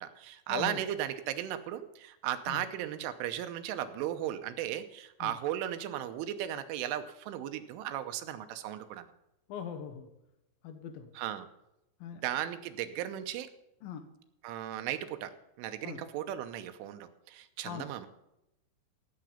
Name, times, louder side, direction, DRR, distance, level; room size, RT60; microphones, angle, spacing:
voice 1, 0.0-9.1 11.1-11.5 12.1-13.5 14.4-15.3 15.6-18.1, right 11 dB, 85° right, 9 dB, 3.2 m, -36 dB
voice 2, 9.5-10.1 10.6-11.1 12.0-12.2 13.8-14.0 15.8-16.0 17.7-17.8, left 8 dB, 85° left, 7 dB, 2.0 m, -40 dB
16.5 x 7.8 x 5.6 m, 0.87 s
omnidirectional pair, 5.8 m